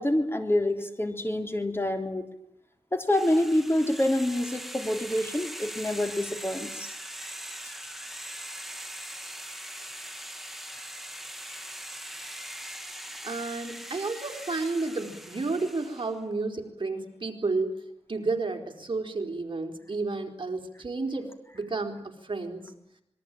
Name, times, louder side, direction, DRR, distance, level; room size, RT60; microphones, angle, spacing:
voice 1, 0.0-2.2 2.9-6.9, left 1 dB, 20° left, 5 dB, 3.6 m, -27 dB
sound 1, 3.1-16.2, equal, ahead, 2.8 m, -41 dB
voice 2, 13.2-17.8 18.1-22.7, right 3 dB, 50° right, 3 dB, 4.4 m, -31 dB
26.5 x 22.5 x 9.2 m, 0.79 s
wide cardioid pair, 75°, 11 cm